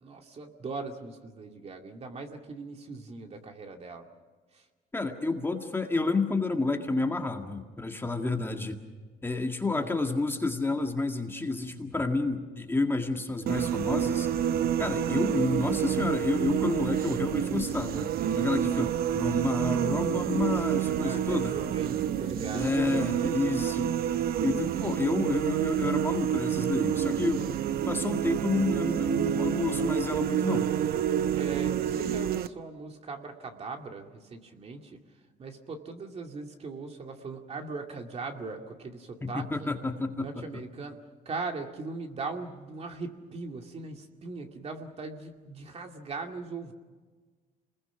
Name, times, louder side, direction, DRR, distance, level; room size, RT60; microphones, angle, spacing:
voice 1, 0.0-4.1 4.5-4.6 9.8-9.9 21.0-22.8 23.8-24.0 31.3-35.0 35.4-39.7 40.2-41.0 41.3-46.7, right 4 dB, 40° right, 4 dB, 2.4 m, -39 dB
voice 2, 4.9-8.8 9.2-14.3 14.8-21.5 22.5-30.7 39.2-40.6, left 3 dB, 15° left, 4 dB, 1.9 m, -30 dB
sound 1, 13.5-32.5, right 10 dB, 65° right, 0.8 m, -28 dB
27.5 x 21.0 x 6.1 m, 1.4 s
cardioid pair, 110°, 17 cm